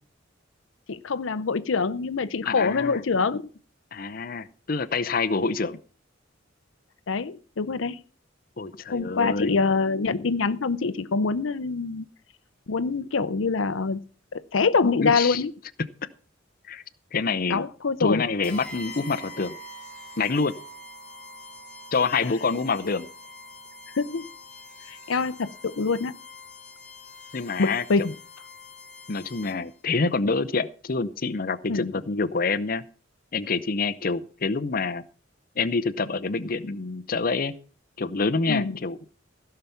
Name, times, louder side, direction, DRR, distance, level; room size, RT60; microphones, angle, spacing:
voice 1, 0.9-3.4 7.1-8.0 8.9-12.0 12.7-14.0 14.3-15.5 17.5-18.2 23.9-24.3 24.9-26.2 27.6-28.1 31.7-31.9 38.5-38.8, left 4 dB, 85° left, 14 dB, 0.6 m, -25 dB
voice 2, 2.5-3.0 3.9-5.8 8.6-9.6 15.0-15.4 16.7-16.8 17.1-17.6 18.0-19.6 20.2-20.5 21.9-23.1 27.3-27.8 29.1-32.8 33.3-35.0 35.6-37.5 38.0-39.0, left 4 dB, 50° left, 11 dB, 0.7 m, -26 dB
sound 1, 18.4-29.8, left 2 dB, 5° left, 2.8 m, -44 dB
16.0 x 5.8 x 6.9 m, 0.39 s
head